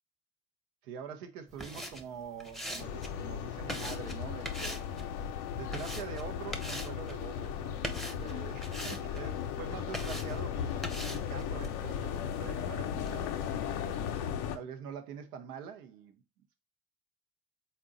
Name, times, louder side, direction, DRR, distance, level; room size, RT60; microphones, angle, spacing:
voice 1, 0.8-5.0 5.5-14.0 14.5-16.2, right 7 dB, 90° right, 0.6 m, -45 dB
sound 1, 1.5-14.1, equal, ahead, 0.6 m, -44 dB
sound 2, 2.8-14.6, left 8 dB, 75° left, 0.6 m, -36 dB
4.0 x 2.2 x 3.6 m
hypercardioid pair, 50°, 44 cm